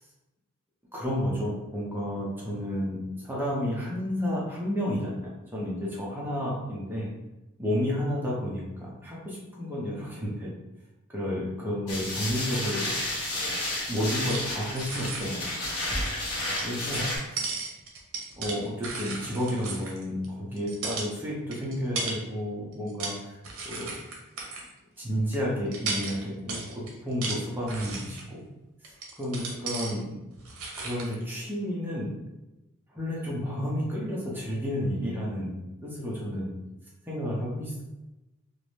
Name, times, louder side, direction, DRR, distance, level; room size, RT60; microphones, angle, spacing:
voice 1, 0.9-3.0 3.2-7.1 7.6-10.5 11.1-12.9 13.3-13.5 13.9-15.5 16.6-17.1 18.4-23.4 23.6-23.9 25.0-28.4 29.2-30.2 30.8-32.1 32.9-36.5 37.1-37.8, equal, 10° right, -6 dB, 0.5 m, -31 dB
sound 1, 11.9-17.2, left 1 dB, 85° left, 0.8 m, -31 dB
sound 2, 13.4-14.5 14.8-15.3 16.6-20.3 20.6-21.1 21.5-22.2 22.7-23.2 23.4-24.7 25.3-25.4 25.7-28.3 28.8-30.0 30.3-31.2, right 3 dB, 90° right, 0.6 m, -36 dB
2.5 x 2.0 x 3.0 m, 1.0 s
head